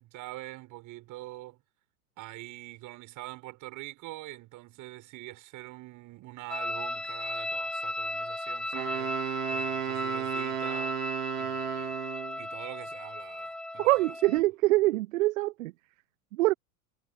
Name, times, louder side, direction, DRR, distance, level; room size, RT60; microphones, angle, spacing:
voice 1, 0.0-1.6 2.2-11.0 11.4-12.0 12.4-14.1, right 18 dB, 40° right, 6.8 m, -45 dB
sound 1, 6.5-14.4, left 1 dB, ahead, 0.6 m, -35 dB
Wind instrument woodwind instrument, 8.7-12.4, right 11 dB, 75° right, 1.7 m, -34 dB
voice 2, 13.8-15.7 16.4-16.5, right 19 dB, 60° right, 0.7 m, -24 dB
hypercardioid pair, 100°, 46 cm